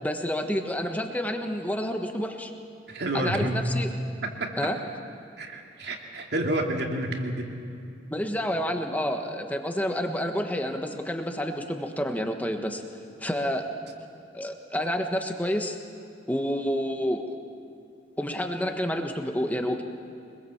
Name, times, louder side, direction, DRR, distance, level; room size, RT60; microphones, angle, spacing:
voice 1, 0.0-2.5 3.1-3.9 4.6-4.8 8.1-12.8 13.2-13.7 14.3-15.8 16.3-17.3 18.2-19.8, equal, 10° left, 4 dB, 1.4 m, -29 dB
voice 2, 2.9-3.6 4.2-4.7 5.4-7.5, right 1 dB, 60° right, 1 dB, 2.6 m, -29 dB
24.5 x 22.0 x 7.3 m, 2.6 s
head